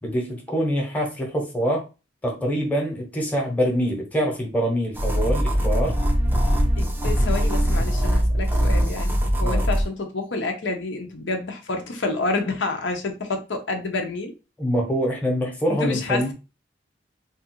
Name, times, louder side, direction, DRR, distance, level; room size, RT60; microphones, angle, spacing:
voice 1, 0.0-1.9 2.2-5.9 9.4-9.6 14.6-16.3, equal, 10° left, 0.8 m, -25 dB
sound 1, 4.9-9.8, equal, 10° right, 0.4 m, -21 dB
voice 2, 6.8-14.3 15.7-16.3, left 3 dB, 80° left, 0.6 m, -29 dB
3.1 x 2.4 x 2.9 m
head